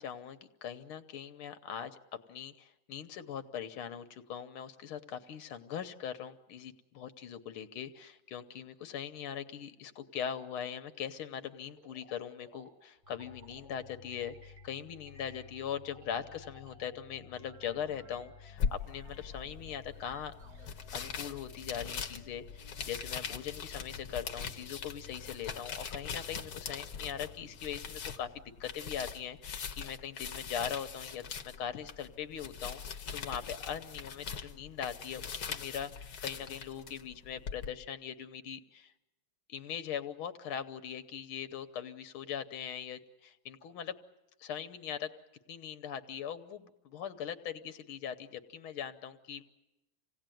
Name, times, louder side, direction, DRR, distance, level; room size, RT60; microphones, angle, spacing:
voice 1, 0.0-2.0 2.3-20.3 20.9-38.9 39.5-44.0 44.4-45.1 45.5-49.4, left 8 dB, 85° left, 9 dB, 1.9 m, -41 dB
sound 1, 11.7-13.8 14.1-14.8 15.1-16.9 17.3-20.7, right 2 dB, 90° right, 3.1 m, -61 dB
sound 2, 13.0-29.4, left 5 dB, 15° left, 1.7 m, -56 dB
sound 3, 18.6-37.7, left 6 dB, 55° left, 1.5 m, -41 dB
27.0 x 17.5 x 9.2 m, 1.0 s
omnidirectional pair, 2.3 m